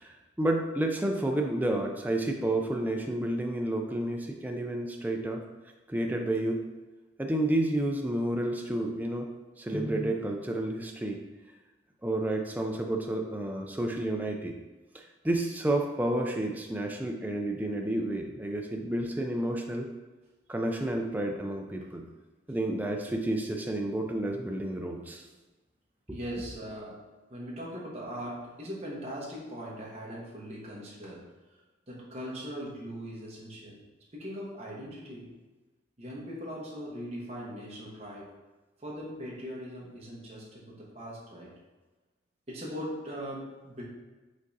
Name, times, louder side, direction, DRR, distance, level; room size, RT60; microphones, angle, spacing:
voice 1, 0.0-5.4 5.9-6.6 7.2-9.3 9.6-11.2 12.0-14.6 14.9-19.9 20.5-22.1 22.5-25.3 26.1-26.2, right 1 dB, 10° right, 2 dB, 0.3 m, -30 dB
voice 2, 26.1-27.0 27.3-31.3 31.9-33.8 34.1-35.3 36.0-38.4 38.8-41.5 42.5-43.8, equal, 35° right, -5 dB, 1.1 m, -40 dB
5.2 x 3.7 x 2.7 m, 1.2 s
head